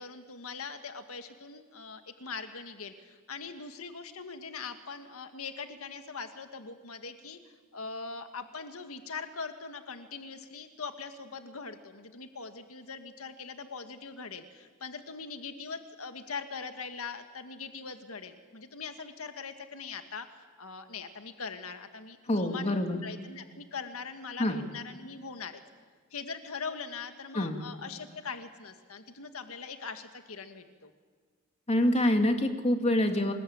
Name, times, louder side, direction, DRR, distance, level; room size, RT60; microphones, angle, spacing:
voice 1, 0.0-7.4 7.7-25.6 26.1-30.9, left 5 dB, 90° left, 7 dB, 1.7 m, -41 dB
voice 2, 22.3-23.0 24.4-24.6 27.3-27.6 31.7-33.3, left 1 dB, 30° left, 5 dB, 2.3 m, -26 dB
29.0 x 20.5 x 8.8 m, 1.5 s
head